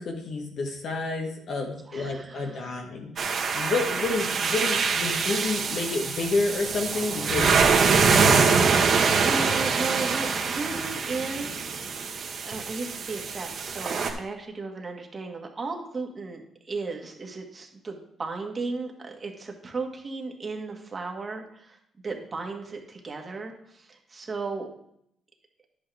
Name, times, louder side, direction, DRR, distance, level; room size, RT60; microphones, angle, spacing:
voice 1, 0.0-7.6 8.0-8.7, left 3 dB, 65° left, 2 dB, 1.9 m, -30 dB
voice 2, 1.9-2.7 9.2-11.7 12.4-21.8 22.0-24.7, right 3 dB, 35° right, 2 dB, 1.8 m, -35 dB
sound 1, 3.2-14.1, right 5 dB, 55° right, 1.6 m, -24 dB
10.5 x 8.5 x 3.5 m, 0.73 s
cardioid pair, 90°, 0 cm